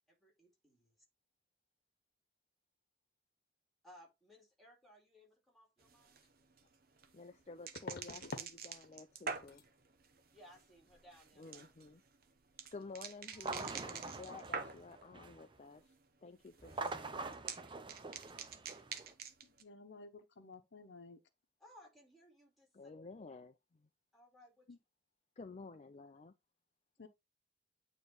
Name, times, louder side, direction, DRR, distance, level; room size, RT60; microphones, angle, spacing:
voice 1, 0.1-0.9 3.8-6.2 10.3-11.6 16.2-16.4 21.6-22.9 24.1-24.8 27.0-27.1, equal, ahead, 2.4 m, -62 dB
sound 1, 5.8-15.1 15.4-16.0 16.2-19.6, right 6 dB, 55° right, 0.8 m, -47 dB
sound 2, 6.2-6.3 7.7-8.5 8.8-9.2 9.5-9.7 12.6-12.7 13.0-13.2 13.5-13.6, left 3 dB, 60° left, 1.1 m, -48 dB
voice 2, 7.1-9.6 11.4-12.0 12.7-15.9 16.2-17.4 22.7-23.9 25.4-26.3, left 3 dB, 40° left, 0.5 m, -52 dB
sound 3, 13.3-15.6 16.6-19.1, right 3 dB, 30° right, 0.6 m, -45 dB
voice 3, 19.4-21.2 24.7-24.8 27.0-27.1, left 3 dB, 80° left, 0.9 m, -54 dB
8.9 x 3.2 x 4.0 m
head